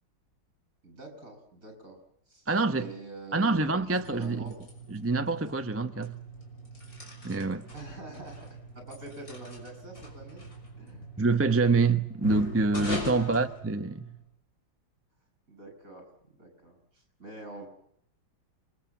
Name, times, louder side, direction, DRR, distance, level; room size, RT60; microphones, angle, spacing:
voice 1, 0.8-2.0 2.3-4.6 7.7-10.4 10.8-11.1 13.0-13.4 15.5-17.7, right 2 dB, 40° right, 8.5 m, -46 dB
voice 2, 2.5-2.9 3.3-4.5 4.9-6.2 7.2-7.6 11.2-14.1, right 3 dB, 15° right, 0.5 m, -26 dB
sound 1, 3.8-14.3, left 1 dB, 45° left, 6.8 m, -41 dB
28.5 x 23.0 x 7.4 m
omnidirectional pair, 2.2 m